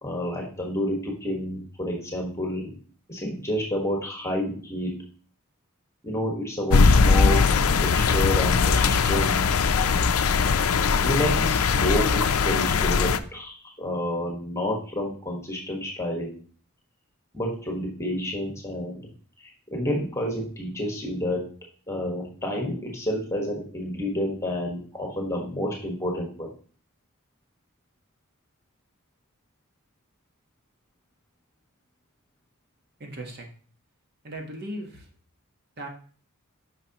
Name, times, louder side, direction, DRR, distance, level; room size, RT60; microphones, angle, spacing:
voice 1, 0.0-2.8 3.1-5.0 6.0-7.4 7.8-9.3 10.9-16.4 17.3-19.1 19.4-21.5 21.9-26.5, left 1 dB, 15° left, 0 dB, 1.4 m, -29 dB
sound 1, 6.7-13.2, left 5 dB, 80° left, 0.5 m, -20 dB
voice 2, 33.0-33.5 34.2-35.1 35.8-35.9, right 1 dB, 50° right, 3 dB, 1.2 m, -37 dB
9.1 x 5.9 x 2.9 m, 0.42 s
head